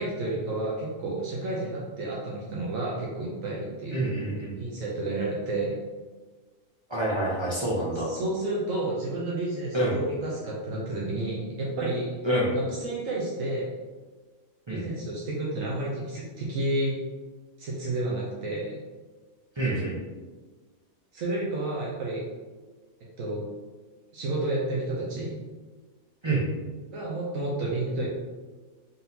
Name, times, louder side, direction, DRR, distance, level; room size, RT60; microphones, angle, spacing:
voice 1, 0.0-4.0 4.6-5.8 7.9-12.2 12.7-13.7 14.7-17.0 17.6-18.8 21.1-22.2 23.2-23.4 24.1-25.4 26.9-28.1, right 2 dB, 75° right, -5 dB, 1.1 m, -31 dB
voice 2, 3.9-4.6 6.9-8.1 9.7-10.0 12.2-12.6 14.7-14.9 19.6-20.0 26.2-26.5, right 1 dB, 45° right, -5 dB, 0.3 m, -27 dB
3.8 x 3.6 x 2.8 m, 1.3 s
omnidirectional pair, 1.4 m